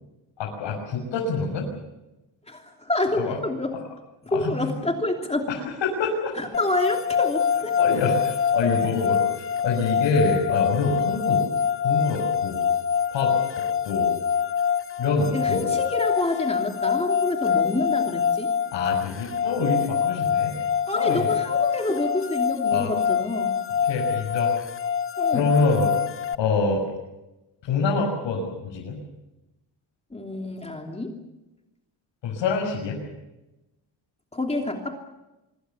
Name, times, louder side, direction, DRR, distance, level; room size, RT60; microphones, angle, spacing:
voice 1, 0.4-1.7 3.1-3.4 3.7-3.8 4.3-4.7 5.5-6.3 7.8-11.4 11.8-12.7 13.1-14.1 15.0-15.7 18.7-20.6 20.9-21.3 22.7-22.9 23.9-24.5 25.3-25.9 26.3-26.8 27.6-29.0 32.2-33.0, left 4 dB, 75° left, -2 dB, 6.4 m, -26 dB
voice 2, 2.5-3.7 4.2-5.5 6.3-7.8 8.6-8.7 15.3-18.5 20.9-23.5 25.2-25.5 30.1-31.2 34.3-35.0, left 2 dB, 15° left, 2 dB, 3.1 m, -28 dB
sound 1, 6.5-26.3, left 7 dB, 30° left, 1.0 m, -25 dB
25.5 x 24.0 x 7.2 m, 0.99 s
cardioid pair, 100°, 44 cm